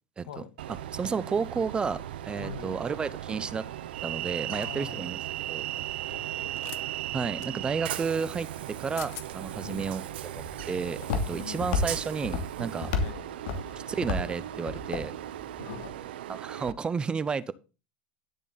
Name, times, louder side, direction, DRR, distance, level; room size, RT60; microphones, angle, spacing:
Train, 0.6-16.7, right 13 dB, 90° right, 0.8 m, -37 dB
voice 1, 0.9-3.7 4.0-5.2 5.5-5.7 7.1-12.9 13.9-15.2 16.3-17.5, right 5 dB, 15° right, 0.6 m, -32 dB
voice 2, 2.4-2.8 4.5-5.1 6.0-6.6 9.6-10.0 11.3-11.8 12.9-13.4 15.6-16.1, left 7 dB, 90° left, 1.7 m, -43 dB
sound 1, 4.6-4.8 6.5-6.8 7.4-7.5 8.7-8.8 9.0-9.3, left 16 dB, 50° left, 0.8 m, -43 dB
Walk footsteps, 9.7-15.9, left 4 dB, 70° left, 2.6 m, -33 dB
11.5 x 7.1 x 4.1 m
supercardioid pair, 135°, 5 cm